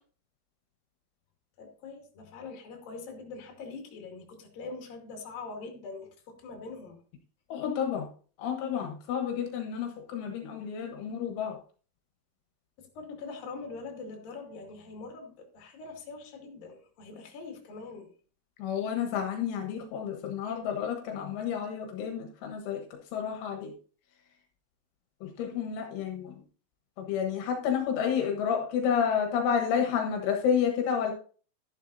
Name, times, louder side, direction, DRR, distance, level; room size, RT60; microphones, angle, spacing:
voice 1, 1.6-7.0 12.8-18.1, left 4 dB, 55° left, 1 dB, 3.7 m, -43 dB
voice 2, 7.5-8.1 8.4-11.6 18.6-22.8 23.1-23.7 25.2-26.4 27.0-31.1, left 7 dB, 80° left, 2 dB, 3.7 m, -30 dB
13.0 x 11.0 x 2.6 m, 0.41 s
omnidirectional pair, 5.6 m